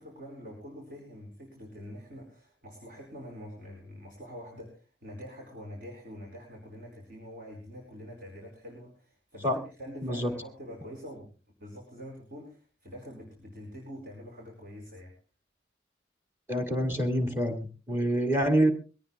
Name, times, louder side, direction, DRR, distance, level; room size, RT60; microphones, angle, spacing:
voice 1, 0.0-11.3 11.6-15.1, equal, 45° right, 0 dB, 4.8 m, -45 dB
voice 2, 16.5-18.7, right 1 dB, 15° right, 5 dB, 2.1 m, -26 dB
22.5 x 17.5 x 2.3 m, 0.35 s
head